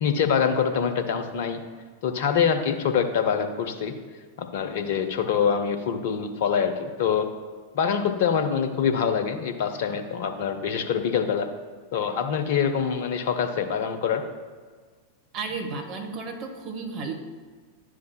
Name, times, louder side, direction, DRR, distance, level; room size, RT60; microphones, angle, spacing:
voice 1, 0.0-1.6 2.0-3.9 4.4-7.3 7.7-11.5 11.9-14.2, left 7 dB, 55° left, 7 dB, 0.6 m, -25 dB
voice 2, 15.3-17.1, right 4 dB, 35° right, 3 dB, 1.0 m, -33 dB
10.5 x 4.7 x 2.2 m, 1.5 s
figure-of-eight pair, 90°, 0 cm